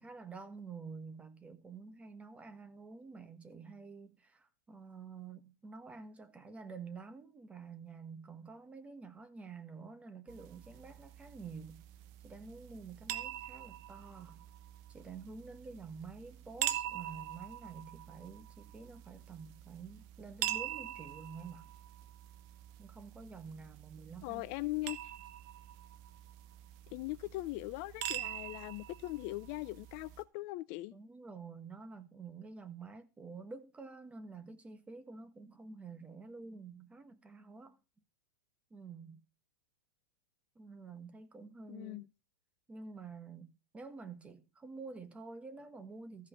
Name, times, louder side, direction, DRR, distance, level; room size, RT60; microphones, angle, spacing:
voice 1, 0.0-11.8 12.2-14.4 14.9-21.7 22.8-24.5 30.9-37.8 38.7-39.2 40.5-42.1 42.7-46.3, right 4 dB, 10° right, 1.3 m, -49 dB
sound 1, 10.3-30.2, right 12 dB, 45° right, 1.1 m, -44 dB
voice 2, 24.2-25.1 26.9-31.0 41.7-42.1, left 20 dB, 45° left, 0.5 m, -40 dB
14.0 x 5.5 x 7.0 m
hypercardioid pair, 135°, 11 cm